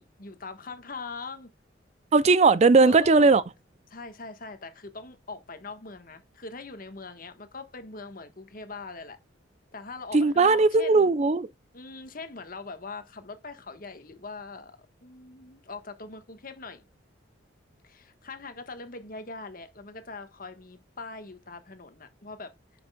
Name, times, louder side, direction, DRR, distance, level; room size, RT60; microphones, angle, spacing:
voice 1, 0.0-1.5 2.8-3.4 3.9-9.2 9.7-11.1 11.7-16.8 17.8-22.5, left 3 dB, 50° left, 1.3 m, -42 dB
voice 2, 2.1-3.4 10.1-11.5, right 3 dB, 35° right, 0.4 m, -18 dB
9.6 x 6.1 x 2.3 m
head